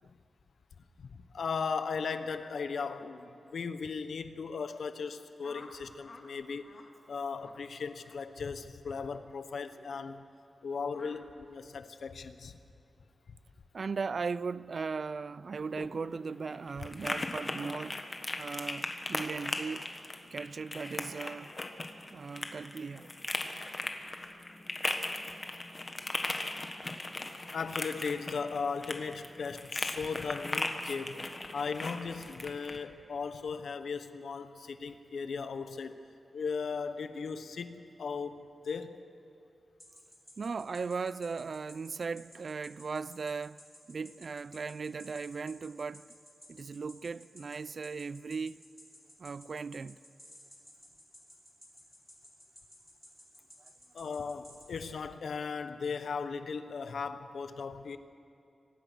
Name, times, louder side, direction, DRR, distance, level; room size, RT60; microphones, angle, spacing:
voice 1, 1.0-6.7 7.1-10.3 10.6-12.6 26.2-26.3 27.5-36.0 36.3-39.0 53.9-58.0, left 5 dB, 80° left, 1.1 m, -37 dB
sound 1, 5.4-6.3 6.6-6.9 7.3-7.6 8.0-8.2 8.8-9.1 9.8-10.0 10.9-11.2, left 3 dB, 55° left, 2.4 m, -52 dB
voice 2, 13.7-18.0 18.4-19.9 20.3-21.5 22.1-23.1 40.4-43.6 43.9-46.1 46.5-48.6 49.2-50.0, right 5 dB, 60° right, 0.4 m, -37 dB
sound 2, 15.6-32.8, left 2 dB, 30° left, 1.5 m, -38 dB
sound 3, 39.8-54.8, left 1 dB, 5° left, 7.3 m, -54 dB
24.0 x 19.0 x 6.3 m
wide cardioid pair, 100°, 0 cm